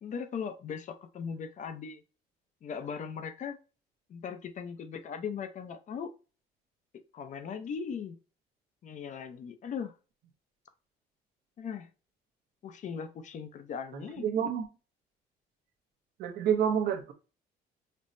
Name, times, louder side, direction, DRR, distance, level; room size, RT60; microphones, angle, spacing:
voice 1, 0.0-2.0 2.6-3.6 4.1-6.1 7.1-8.2 8.8-10.0 11.6-11.9 12.6-14.3, left 6 dB, 45° left, 0.6 m, -38 dB
voice 2, 13.9-14.7 16.2-17.1, right 8 dB, 70° right, 0.7 m, -29 dB
5.3 x 2.1 x 2.6 m
cardioid pair, 110°, 17 cm